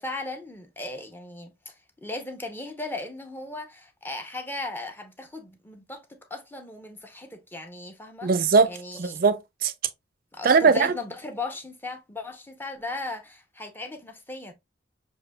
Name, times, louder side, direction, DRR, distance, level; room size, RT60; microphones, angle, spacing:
voice 1, 0.0-1.7 2.0-8.3 8.6-9.2 10.3-14.5, left 2 dB, 10° left, 0.6 m, -37 dB
voice 2, 8.2-8.7 9.0-9.7 10.4-10.9, right 5 dB, 50° right, 0.5 m, -20 dB
6.4 x 2.7 x 2.2 m
head